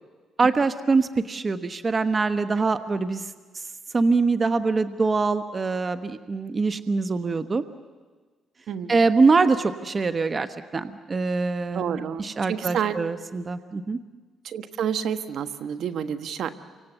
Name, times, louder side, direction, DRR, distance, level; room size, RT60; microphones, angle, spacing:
voice 1, 0.4-3.3 3.9-7.6 8.9-10.5 10.7-14.0, right 4 dB, 35° right, 11 dB, 1.0 m, -23 dB
voice 2, 8.7-9.0 11.7-13.0 14.4-16.5, right 8 dB, 70° right, 10 dB, 1.3 m, -29 dB
29.5 x 25.0 x 8.1 m, 1.4 s
cardioid pair, 90°, 0 cm